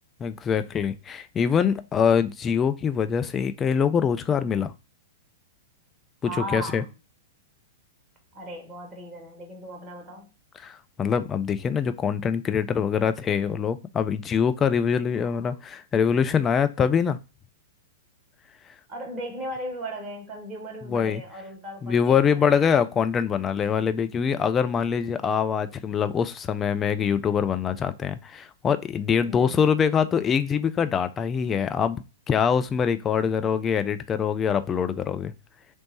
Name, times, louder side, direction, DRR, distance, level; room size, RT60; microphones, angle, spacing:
voice 1, 0.2-4.7 6.2-6.8 10.6-17.2 20.9-21.2 21.8-35.3, left 7 dB, 20° left, 0.3 m, -24 dB
voice 2, 6.2-6.9 8.3-10.3 15.2-15.6 18.9-22.8 29.2-29.6, right 1 dB, 25° right, 1.2 m, -37 dB
3.1 x 3.1 x 2.8 m
figure-of-eight pair, 105°, 0 cm